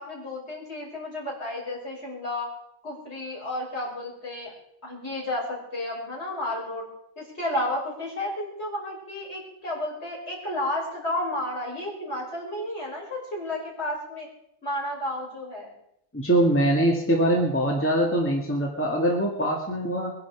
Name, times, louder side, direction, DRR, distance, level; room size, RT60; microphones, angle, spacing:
voice 1, 0.0-2.5 2.8-4.5 4.8-6.9 7.2-14.3 14.6-15.7, left 1 dB, 50° left, -4 dB, 6.1 m, -32 dB
voice 2, 16.1-20.1, right 1 dB, 10° left, -1 dB, 2.2 m, -23 dB
22.5 x 11.0 x 4.8 m, 0.75 s
omnidirectional pair, 1.4 m